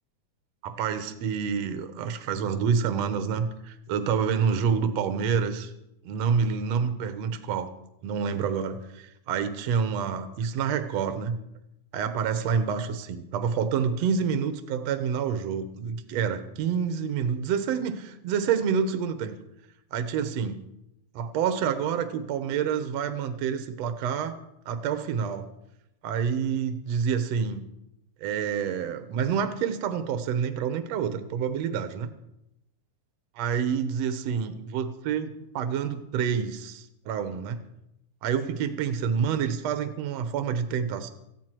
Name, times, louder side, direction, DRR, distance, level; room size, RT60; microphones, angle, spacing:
voice 1, 0.6-5.7 6.1-7.7 8.0-11.4 11.9-19.4 19.9-20.6 21.2-24.4 24.7-25.5 26.0-27.6 28.2-32.1 33.4-37.6 38.2-41.1, right 7 dB, 70° right, 9 dB, 2.3 m, -28 dB
19.0 x 15.0 x 4.6 m, 0.84 s
omnidirectional pair, 3.3 m